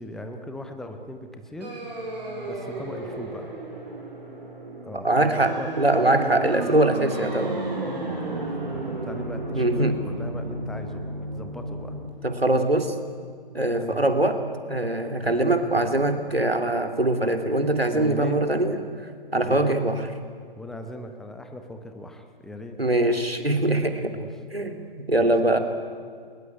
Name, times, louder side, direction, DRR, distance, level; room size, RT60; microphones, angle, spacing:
voice 1, 0.0-1.8 2.4-3.5 4.8-5.7 6.2-6.5 7.8-12.0 13.8-14.0 15.2-15.4 17.9-18.4 19.4-19.8 20.6-22.8 24.1-24.3 25.2-25.3, left 1 dB, ahead, 6 dB, 0.8 m, -39 dB
sound 1, 1.6-12.1, right 2 dB, 45° right, 6.3 m, -33 dB
voice 2, 5.0-7.5 9.5-10.0 12.2-12.9 13.5-14.4 14.7-20.1 22.8-24.2 24.5-25.6, right 1 dB, 85° right, 7 dB, 2.6 m, -23 dB
20.5 x 20.5 x 9.3 m, 2.1 s
figure-of-eight pair, 135°, 29 cm